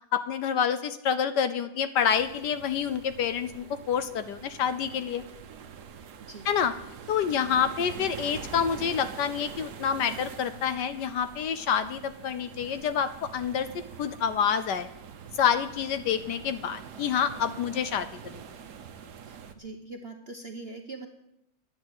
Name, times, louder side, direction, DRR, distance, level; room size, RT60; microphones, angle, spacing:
voice 1, 0.1-5.3 6.4-6.7 7.1-13.7 14.0-14.9 15.3-18.1 18.3-18.4, left 7 dB, 70° left, 12 dB, 1.2 m, -27 dB
sound 1, 2.0-19.5, right 7 dB, 60° right, 1.5 m, -45 dB
voice 2, 19.3-21.1, right 3 dB, 45° right, 4 dB, 0.9 m, -42 dB
10.5 x 9.7 x 8.1 m, 0.85 s
omnidirectional pair, 2.2 m